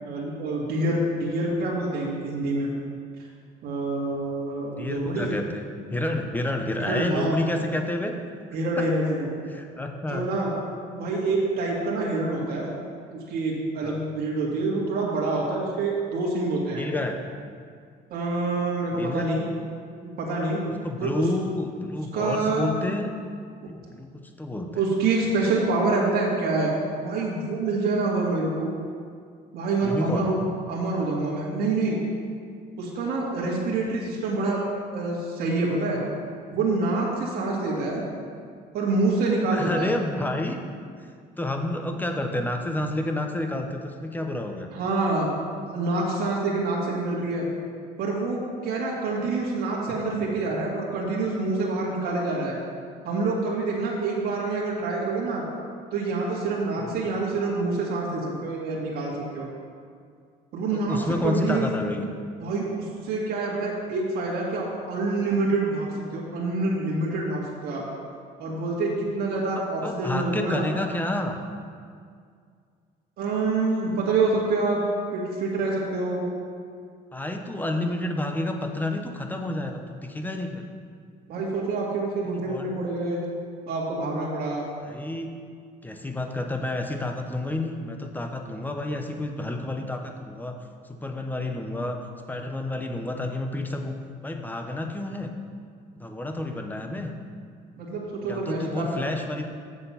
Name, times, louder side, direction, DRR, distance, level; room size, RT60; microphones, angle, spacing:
voice 1, 0.0-2.7 3.6-5.3 6.8-7.7 8.5-9.3 10.1-10.5 10.9-12.7 13.1-16.8 18.1-19.4 20.0-20.6 21.0-21.1 22.1-22.7 24.8-26.7 27.0-28.7 29.5-30.4 30.7-32.0 32.8-34.6 34.9-36.0 36.5-38.0 38.7-39.9 44.7-45.3 45.7-47.4 48.0-52.6 53.0-55.4 55.9-59.5 60.5-61.7 62.4-67.9 68.4-70.7 73.2-74.8 75.1-76.2 81.3-83.2 83.7-84.7 97.8-99.0, right 3 dB, 70° right, -4 dB, 2.0 m, -26 dB
voice 2, 4.8-8.1 8.8-8.9 9.5-10.3 13.8-14.0 16.7-17.2 18.9-19.2 20.8-23.1 23.7-24.8 29.8-30.3 39.5-40.6 41.0-41.1 41.4-44.7 56.8-57.0 60.7-62.1 69.8-71.4 77.1-80.7 82.3-82.7 84.9-85.3 85.8-90.6 90.8-92.0 92.3-93.9 94.2-95.3 95.9-97.1 98.3-99.5, left 1 dB, 10° left, 4 dB, 0.9 m, -30 dB
7.6 x 6.8 x 5.7 m, 2.2 s
cardioid pair, 110°, 17 cm